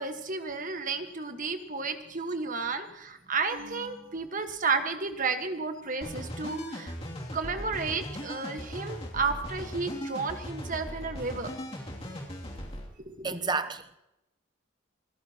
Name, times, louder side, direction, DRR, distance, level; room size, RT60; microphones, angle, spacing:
voice 1, 0.0-6.9 7.3-11.5 13.1-13.3, right 4 dB, 40° right, 1.4 m, -32 dB
sound 1, 3.5-5.2, right 1 dB, 80° right, 3.0 m, -50 dB
sound 2, 6.0-12.9, equal, 30° left, 2.7 m, -39 dB
voice 2, 13.2-14.0, right 4 dB, 20° right, 0.8 m, -30 dB
27.0 x 15.0 x 3.0 m
head